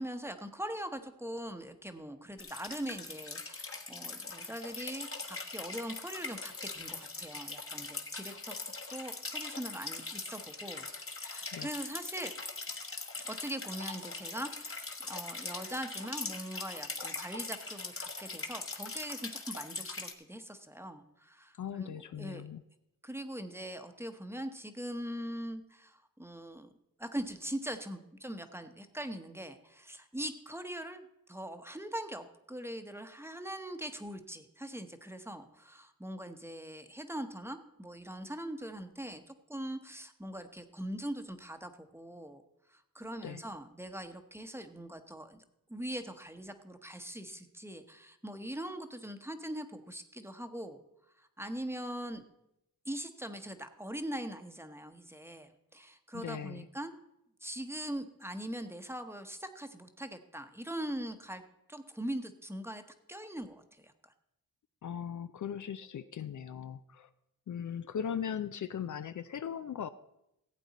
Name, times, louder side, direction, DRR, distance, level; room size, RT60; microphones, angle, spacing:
voice 1, 0.0-8.5 8.9-12.3 13.2-22.5 23.0-26.7 27.0-42.4 42.7-45.4 45.7-50.8 51.2-52.2 52.8-56.9 57.4-61.4 61.7-62.8 63.1-64.1, right 1 dB, 5° right, 7 dB, 1.0 m, -42 dB
sound 1, 2.4-20.1, left 3 dB, 40° left, 1.3 m, -41 dB
voice 2, 21.5-22.6 43.2-43.4 56.1-56.7 64.8-67.1 67.5-69.9, left 8 dB, 55° left, 11 dB, 0.5 m, -39 dB
15.5 x 8.3 x 4.1 m, 0.84 s
cardioid pair, 75°, 36 cm